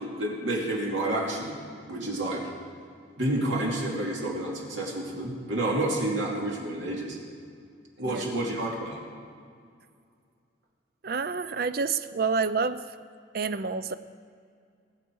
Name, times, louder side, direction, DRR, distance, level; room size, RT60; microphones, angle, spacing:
voice 1, 0.0-1.6 1.9-2.5 3.2-7.2 8.0-9.0, right 1 dB, 75° right, -3 dB, 2.6 m, -29 dB
voice 2, 11.0-12.8 13.3-13.9, right 4 dB, 50° right, 13 dB, 0.5 m, -28 dB
21.0 x 8.2 x 4.7 m, 2.3 s
head